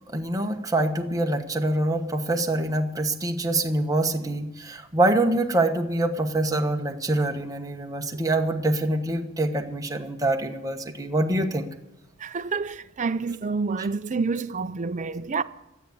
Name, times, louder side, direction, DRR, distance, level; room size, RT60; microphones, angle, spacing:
voice 1, 0.1-11.7, right 2 dB, 15° right, 1.2 m, -25 dB
voice 2, 12.2-15.4, right 4 dB, 35° right, 0.5 m, -28 dB
13.5 x 8.2 x 9.5 m
head